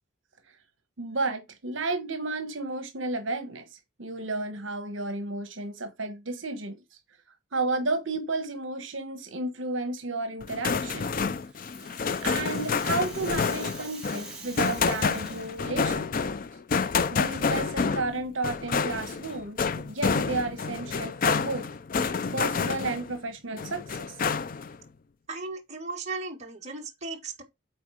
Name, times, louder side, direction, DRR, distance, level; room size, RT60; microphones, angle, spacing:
voice 1, 1.0-3.7 4.0-6.8 7.5-11.3 12.2-16.3 17.1-21.7 22.3-24.2, right 3 dB, 70° right, 1.3 m, -32 dB
sound 1, 10.4-23.2 23.6-24.8, left 5 dB, 40° left, 0.4 m, -28 dB
Rattle (instrument), 11.1-15.9, right 3 dB, 5° right, 2.3 m, -46 dB
voice 2, 25.3-27.4, right 3 dB, 35° right, 1.6 m, -36 dB
9.0 x 3.9 x 4.8 m
head